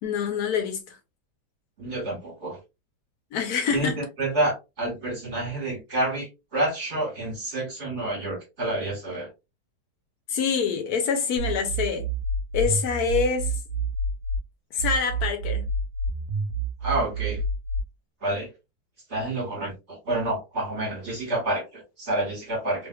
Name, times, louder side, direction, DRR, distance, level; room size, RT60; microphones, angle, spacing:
voice 1, 0.0-1.0 3.3-4.1 10.3-12.1 12.5-13.5 14.7-15.7, left 6 dB, 70° left, 1.1 m, -26 dB
voice 2, 1.8-2.6 3.7-9.3 16.8-17.4 18.2-18.5 19.1-22.9, right 2 dB, 45° right, 1.8 m, -29 dB
sound 1, 11.4-14.4 14.8-17.8, right 3 dB, 60° right, 0.7 m, -28 dB
3.2 x 3.1 x 2.2 m
omnidirectional pair, 1.8 m